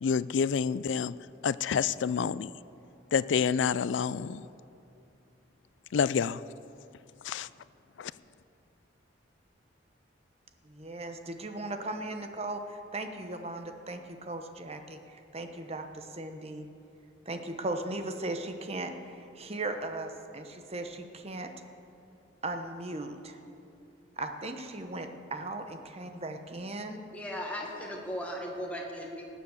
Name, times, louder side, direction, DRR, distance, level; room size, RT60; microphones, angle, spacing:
voice 1, 0.0-1.1 1.4-2.5 3.1-4.5 5.9-6.4 7.2-7.5 8.0-8.1, left 6 dB, 75° left, 18 dB, 0.4 m, -28 dB
voice 2, 10.6-16.7 17.3-21.5 22.4-23.4 24.2-27.0, right 2 dB, 35° right, 6 dB, 0.9 m, -37 dB
voice 3, 27.1-29.2, equal, 5° left, -1 dB, 1.8 m, -37 dB
18.5 x 7.5 x 7.1 m, 2.6 s
head